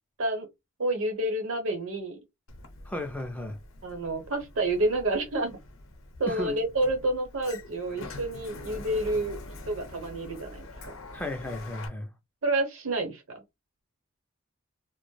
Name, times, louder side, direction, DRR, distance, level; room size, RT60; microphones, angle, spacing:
voice 1, 0.8-2.2 3.8-5.6 6.2-9.4 9.7-10.9 12.4-13.2, right 2 dB, 70° right, 0.9 m, -29 dB
Sliding door, 2.5-11.9, left 2 dB, 65° left, 0.5 m, -45 dB
voice 2, 2.8-3.6 6.3-6.6 11.1-12.1, left 1 dB, 5° left, 0.3 m, -34 dB
2.1 x 2.0 x 3.1 m
head